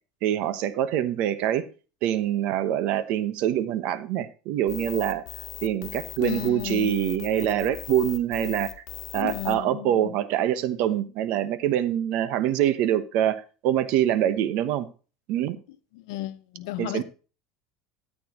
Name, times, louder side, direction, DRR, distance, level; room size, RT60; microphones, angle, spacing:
voice 1, 0.2-1.6 2.0-5.2 5.6-8.7 9.1-14.9 15.3-15.6 16.8-17.0, right 11 dB, 55° right, 1.1 m, -25 dB
sound 1, 4.7-9.6, left 10 dB, 65° left, 1.7 m, -39 dB
voice 2, 6.2-6.9 9.1-10.1 15.9-17.0, left 15 dB, 80° left, 1.0 m, -33 dB
13.5 x 8.6 x 3.1 m
cardioid pair, 150°, 2 cm